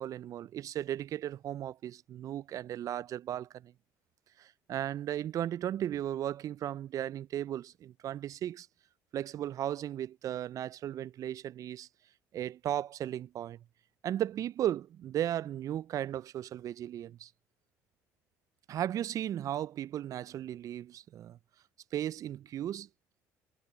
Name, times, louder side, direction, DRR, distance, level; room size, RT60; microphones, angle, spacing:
voice 1, 0.0-3.7 4.4-8.7 9.1-11.9 12.3-13.6 14.0-17.3 18.7-21.4 21.9-22.9, right 11 dB, 50° right, 0.3 m, -36 dB
supercardioid pair, 75°, 7 cm